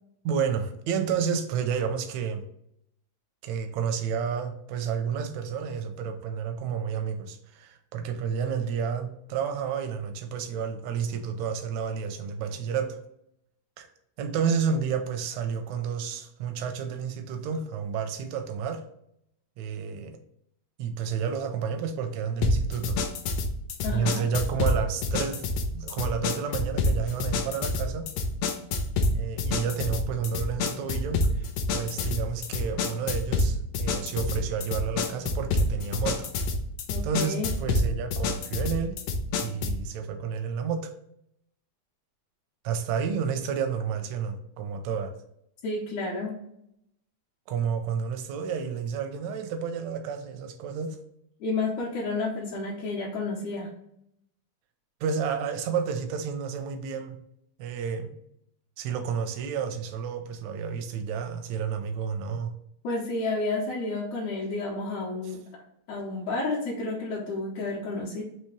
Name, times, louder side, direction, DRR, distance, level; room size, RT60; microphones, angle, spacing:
voice 1, 0.2-2.4 3.4-13.0 13.8-13.9 14.2-18.8 19.6-20.2 20.8-23.0 23.9-25.4 25.7-28.1 29.1-31.5 31.7-36.3 37.0-39.0 39.4-40.9 42.6-45.1 47.5-51.0 55.0-57.2 57.6-58.1 58.8-62.5, right 6 dB, 80° right, 7 dB, 1.7 m, -30 dB
sound 1, 22.4-39.9, left 2 dB, 90° left, 1.4 m, -28 dB
voice 2, 23.8-24.2 36.9-37.5 45.6-46.4 51.4-53.7 62.8-65.4 65.9-68.2, left 3 dB, 75° left, -6 dB, 2.2 m, -31 dB
5.6 x 2.9 x 3.0 m, 0.75 s
omnidirectional pair, 3.5 m